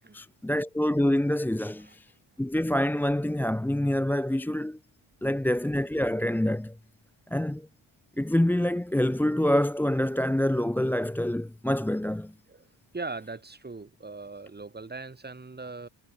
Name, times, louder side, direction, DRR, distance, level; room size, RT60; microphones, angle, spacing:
voice 1, 0.1-2.1 2.4-4.8 5.2-6.8 7.3-7.7 8.2-12.3, left 1 dB, 5° left, 0.8 m, -26 dB
voice 2, 12.9-15.9, right 3 dB, 20° right, 6.9 m, -40 dB
cardioid pair, 115°, 49 cm